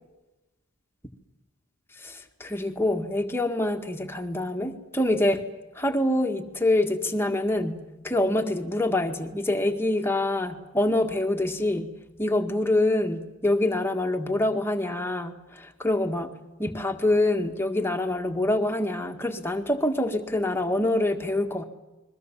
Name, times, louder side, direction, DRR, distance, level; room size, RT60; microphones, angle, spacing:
voice 1, 2.0-5.5 5.7-7.8 8.0-11.9 12.2-16.3 16.6-21.6, left 1 dB, 10° left, 5 dB, 1.9 m, -25 dB
29.0 x 22.5 x 7.6 m, 1.1 s
head